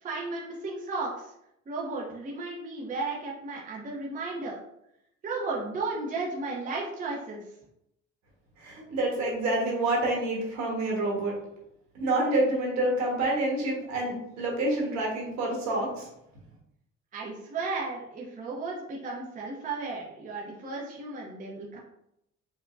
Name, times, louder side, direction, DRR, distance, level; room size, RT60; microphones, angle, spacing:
voice 1, 0.0-1.3 1.7-4.6 5.2-7.4 17.1-21.8, right 3 dB, 25° right, -3 dB, 0.6 m, -34 dB
voice 2, 8.6-11.3 11.9-16.1, right 2 dB, 65° right, -1 dB, 1.2 m, -27 dB
4.6 x 2.1 x 2.4 m, 0.79 s
cardioid pair, 135°, 30 cm